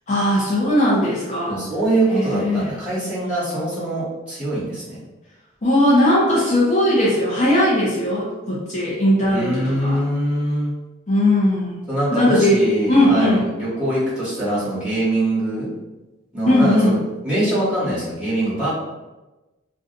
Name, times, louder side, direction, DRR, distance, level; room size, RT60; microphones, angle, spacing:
voice 1, 0.1-1.6 2.1-2.7 5.6-10.0 11.1-11.8 12.1-12.6 12.9-13.4 16.5-17.0, left 1 dB, 35° left, -6 dB, 0.6 m, -18 dB
voice 2, 1.5-5.0 9.3-10.7 11.9-15.7 16.3-18.7, right 1 dB, 5° right, -11 dB, 1.4 m, -23 dB
2.5 x 2.3 x 3.8 m, 1.1 s
head